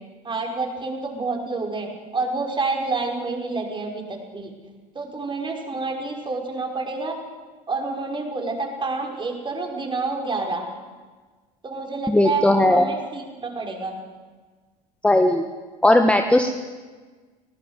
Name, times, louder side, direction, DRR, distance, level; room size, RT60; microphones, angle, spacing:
voice 1, 0.2-4.5 5.0-7.1 7.7-10.6 11.6-13.9, right 3 dB, 20° right, 2 dB, 5.8 m, -28 dB
voice 2, 12.1-12.8 15.0-15.4 15.8-16.5, left 1 dB, 5° left, 5 dB, 1.6 m, -17 dB
24.0 x 18.5 x 8.4 m, 1.4 s
figure-of-eight pair, 70°, 21 cm